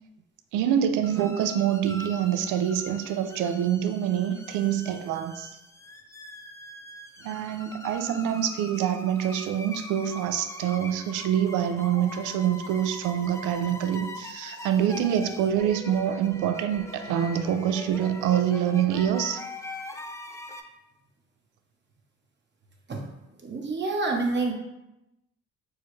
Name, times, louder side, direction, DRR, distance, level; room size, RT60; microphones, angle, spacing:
voice 1, 0.5-5.5 7.2-19.4, right 9 dB, 90° right, 8 dB, 0.5 m, -26 dB
sound 1, 1.0-20.6, left 2 dB, 10° left, 0.4 m, -42 dB
voice 2, 11.8-12.1 22.9-23.1 23.4-24.5, right 3 dB, 35° right, 0 dB, 0.8 m, -28 dB
6.2 x 2.3 x 3.1 m, 0.93 s
cardioid pair, 90°, 30 cm